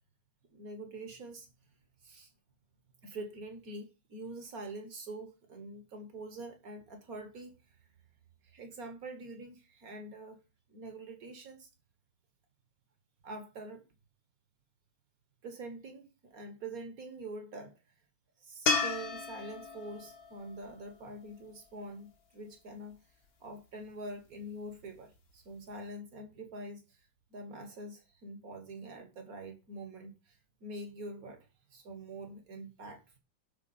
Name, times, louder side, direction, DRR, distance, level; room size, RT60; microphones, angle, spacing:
voice 1, 0.5-1.5 2.0-2.3 3.0-7.6 8.4-10.4 10.7-11.7 13.2-13.8 15.4-17.8 18.4-23.0 23.4-27.0 27.3-33.2, right 2 dB, 50° right, 1.8 m, -45 dB
sound 1, 18.7-21.9 25.2-25.3, left 5 dB, 55° left, 1.6 m, -35 dB
12.5 x 4.2 x 4.2 m
omnidirectional pair, 2.1 m